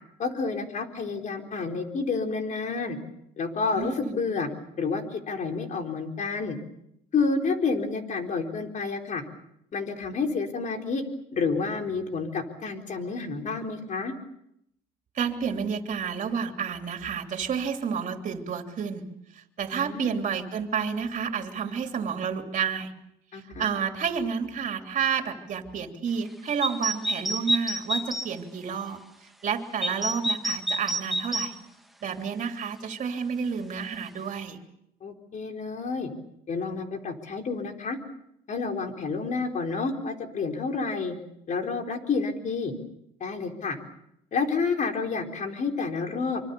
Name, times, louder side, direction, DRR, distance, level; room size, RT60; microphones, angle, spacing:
voice 1, 0.2-3.0 3.4-4.5 4.8-6.6 7.1-9.2 9.7-11.0 11.3-14.1 19.7-20.2 23.3-23.7 35.0-36.1 36.5-38.0 38.5-41.2 41.5-42.7 43.2-43.8 44.3-46.4, left 4 dB, 45° left, 4 dB, 4.1 m, -29 dB
voice 2, 3.8-4.2 15.1-19.1 19.3-22.9 23.3-29.0 29.4-31.5 32.0-34.6, right 6 dB, 50° right, 5 dB, 3.1 m, -30 dB
sound 1, 26.6-28.3 29.8-31.5, right 1 dB, ahead, 1.6 m, -28 dB
25.5 x 25.0 x 7.0 m, 0.78 s
cardioid pair, 110°, 17 cm